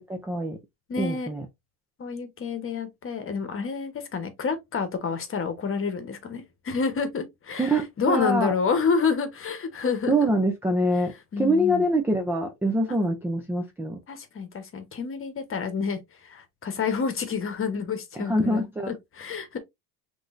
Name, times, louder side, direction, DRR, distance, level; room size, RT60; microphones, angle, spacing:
voice 1, 0.1-0.6 1.0-1.5 7.6-8.5 10.1-14.0 18.2-18.9, right 1 dB, 5° right, 0.3 m, -25 dB
voice 2, 0.9-1.3 2.0-10.2 11.3-11.8 14.1-19.6, left 5 dB, 25° left, 1.0 m, -29 dB
6.0 x 3.2 x 2.5 m
cardioid pair, 130°, 48 cm